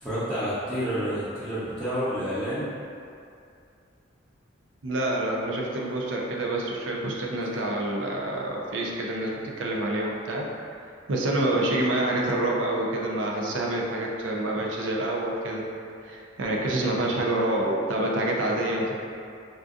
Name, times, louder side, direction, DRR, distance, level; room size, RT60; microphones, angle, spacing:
voice 1, 0.0-2.7, equal, ahead, -17 dB, 0.7 m, -29 dB
voice 2, 4.8-10.4 11.1-15.7 16.0-19.0, right 1 dB, 85° right, -2 dB, 0.5 m, -27 dB
3.6 x 2.5 x 2.4 m, 2.4 s
head